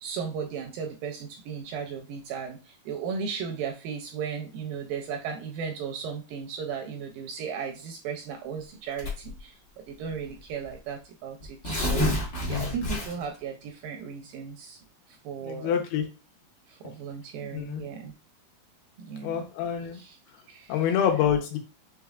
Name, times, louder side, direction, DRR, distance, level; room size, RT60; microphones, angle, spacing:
voice 1, 0.0-14.8 15.1-15.7 16.7-18.1 19.0-19.5 19.9-20.2 20.5-20.8, right 6 dB, 80° right, 3 dB, 2.0 m, -36 dB
Tearing, 9.0-9.4 10.3-10.4 10.6-10.7 11.4-13.4, left 1 dB, 65° left, 1.0 m, -28 dB
voice 2, 15.4-16.0 16.8-16.9 17.5-17.8 19.2-20.0 20.7-21.6, left 9 dB, 80° left, 3 dB, 2.8 m, -27 dB
6.3 x 3.5 x 2.3 m, 0.32 s
omnidirectional pair, 4.5 m